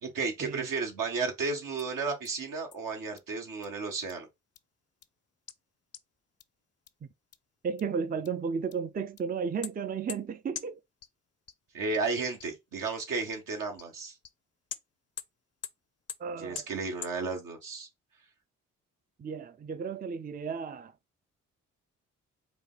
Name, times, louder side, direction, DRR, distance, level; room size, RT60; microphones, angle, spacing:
voice 1, 0.0-4.3 11.7-14.2 16.4-17.9, right 4 dB, 75° right, 1.5 m, -33 dB
sound 1, 1.8-1.9 2.2-2.3 2.7-2.8 3.2-3.3 3.6-3.7 4.1-4.2 4.6-4.7 5.0-5.1 5.5-5.6 5.9-6.0 6.4-6.5 6.9-7.0 7.3-7.4 7.8-7.9 8.2-8.3 8.7-8.8 9.2-9.3 9.6-9.7 10.1-10.2 10.5-10.6 11.0-11.1 11.5-11.6 11.9-12.0 12.4-12.5 12.9-13.0 13.3-13.4 13.8-13.9 14.2-14.3 14.7-14.8 15.2-15.3 15.6-15.7 16.1-16.2 16.5-16.6 17.0-17.1, left 9 dB, 50° left, 0.6 m, -39 dB
voice 2, 7.6-10.8 16.2-16.7 19.2-20.9, right 6 dB, 25° right, 0.5 m, -34 dB
4.8 x 2.3 x 3.8 m
supercardioid pair, 50°, 33 cm